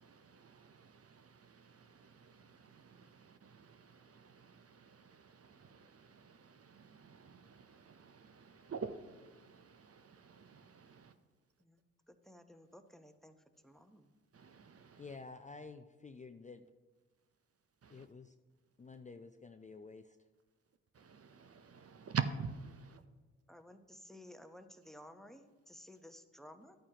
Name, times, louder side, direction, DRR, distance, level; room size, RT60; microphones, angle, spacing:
voice 1, 0.0-11.1 14.3-15.0 17.8-18.1 20.9-23.0, right 6 dB, 40° right, 0.7 m, -46 dB
voice 2, 12.1-13.3 13.6-14.1 23.5-26.8, left 1 dB, ahead, 0.9 m, -56 dB
voice 3, 15.0-16.6 17.9-18.3 18.8-20.2, left 4 dB, 20° left, 0.5 m, -51 dB
11.5 x 8.7 x 2.9 m
hypercardioid pair, 40°, 36 cm